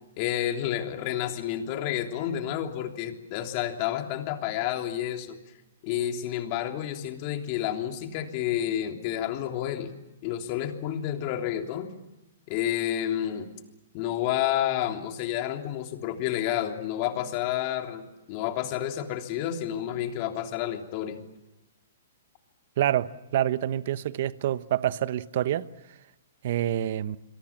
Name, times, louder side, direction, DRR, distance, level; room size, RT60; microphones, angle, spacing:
voice 1, 0.2-5.4 5.8-9.9 10.2-11.9 12.5-13.5 13.9-21.2, left 11 dB, 40° left, 3.3 m, -30 dB
voice 2, 22.8-25.7 26.4-27.2, right 11 dB, 55° right, 1.1 m, -27 dB
27.5 x 22.5 x 7.4 m
hypercardioid pair, 140°, 0 cm